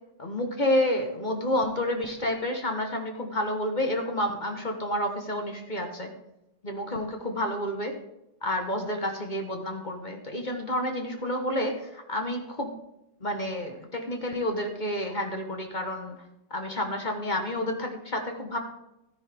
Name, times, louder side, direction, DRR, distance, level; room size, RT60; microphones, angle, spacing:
voice 1, 0.2-6.1 6.6-7.9 8.4-12.7 13.2-16.2 16.5-18.6, left 1 dB, 30° left, 4 dB, 1.3 m, -29 dB
13.5 x 10.0 x 3.6 m, 0.90 s
omnidirectional pair, 1.9 m